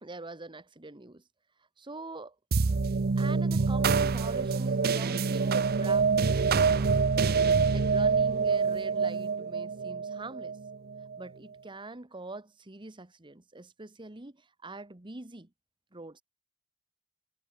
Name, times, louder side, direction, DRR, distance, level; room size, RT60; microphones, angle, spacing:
voice 1, 0.0-1.2 1.8-2.4 3.2-6.9 7.7-10.6 11.2-15.5 15.9-16.2, right 2 dB, 20° right, 1.2 m, -44 dB
sound 1, 2.5-11.2, right 5 dB, 45° right, 0.6 m, -26 dB
head